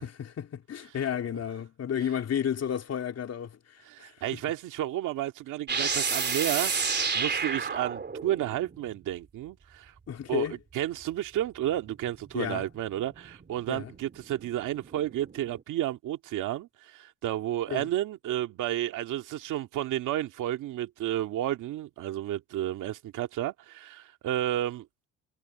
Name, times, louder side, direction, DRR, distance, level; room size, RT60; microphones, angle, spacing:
voice 1, 0.0-4.4 10.1-10.6 12.3-12.6 13.7-13.9 17.7-17.9, left 8 dB, 55° left, 3.1 m, -32 dB
voice 2, 3.9-9.9 10.3-10.5 10.7-24.9, right 13 dB, 85° right, 2.0 m, -32 dB
sound 1, 5.7-9.1 11.8-15.6, right 5 dB, 35° right, 3.3 m, -32 dB
cardioid pair, 90°, 30 cm